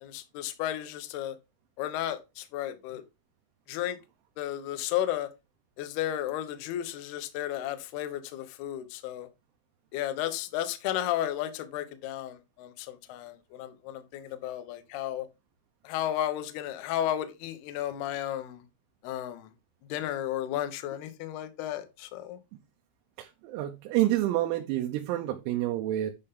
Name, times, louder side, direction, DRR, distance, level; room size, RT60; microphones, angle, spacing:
voice 1, 0.0-1.4 1.8-3.0 3.7-4.0 4.4-5.3 5.8-9.3 9.9-15.3 15.8-18.6 19.0-19.5 19.9-22.4, left 12 dB, 80° left, 2.3 m, -33 dB
voice 2, 23.2-26.1, right 14 dB, 90° right, 3.7 m, -28 dB
10.5 x 5.7 x 3.7 m
omnidirectional pair, 6.0 m